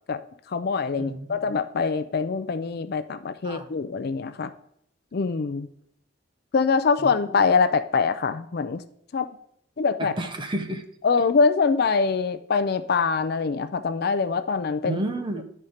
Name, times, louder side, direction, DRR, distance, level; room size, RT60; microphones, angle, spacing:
voice 1, 0.5-4.5 5.1-5.7 6.5-8.8 9.1-9.3 9.8-10.1 11.0-15.0, left 5 dB, 55° left, 11 dB, 0.4 m, -24 dB
voice 2, 1.0-1.4 3.4-3.7 7.3-7.4 10.0-10.8 14.8-15.4, right 1 dB, 25° right, 5 dB, 0.8 m, -31 dB
10.5 x 4.3 x 5.0 m, 0.71 s
head